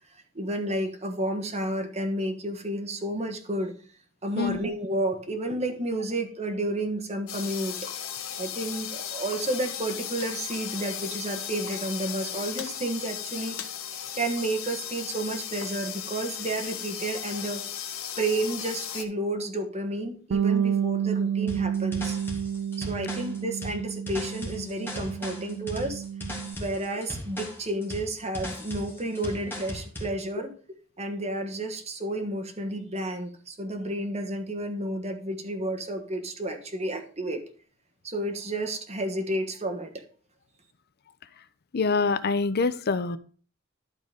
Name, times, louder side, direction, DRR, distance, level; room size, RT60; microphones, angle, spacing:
voice 1, 0.3-3.7 4.2-7.9 8.4-13.6 14.1-17.6 18.2-22.2 22.8-26.0 26.5-30.5 31.0-37.4 38.0-40.0, right 1 dB, 35° right, 4 dB, 1.4 m, -31 dB
sound 1, 7.3-19.0, left 9 dB, 80° left, 0.9 m, -36 dB
Bass guitar, 20.3-26.6, right 8 dB, 65° right, 0.4 m, -29 dB
sound 2, 21.5-30.2, left 1 dB, 10° left, 2.0 m, -38 dB
voice 2, 41.7-43.2, left 4 dB, 50° left, 14 dB, 0.6 m, -25 dB
11.5 x 3.9 x 5.1 m, 0.41 s
head